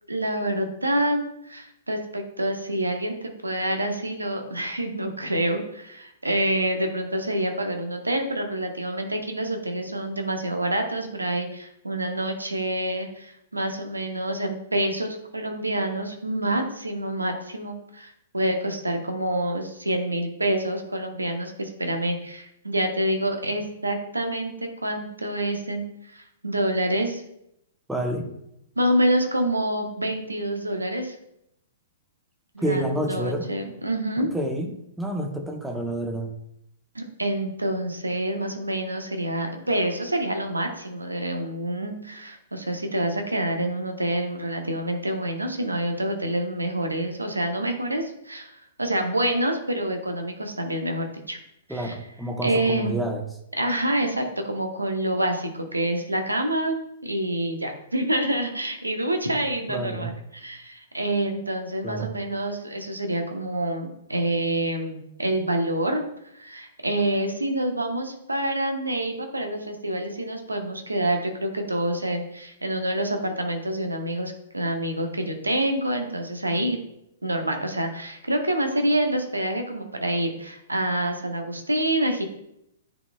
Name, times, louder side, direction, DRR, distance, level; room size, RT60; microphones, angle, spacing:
voice 1, 0.1-3.2 3.4-24.5 24.8-27.2 28.8-31.1 32.5-34.3 36.9-51.4 51.7-51.9 52.4-53.0 53.6-56.8 57.0-66.0 66.3-76.8 77.2-82.2, right 1 dB, 90° right, 4 dB, 1.0 m, -27 dB
voice 2, 27.9-28.3 32.6-33.5 34.2-36.3 51.7-53.2 59.7-60.2 61.8-62.1, right 1 dB, 5° right, 3 dB, 0.9 m, -29 dB
9.9 x 4.3 x 2.3 m, 0.78 s
figure-of-eight pair, 115°, 0 cm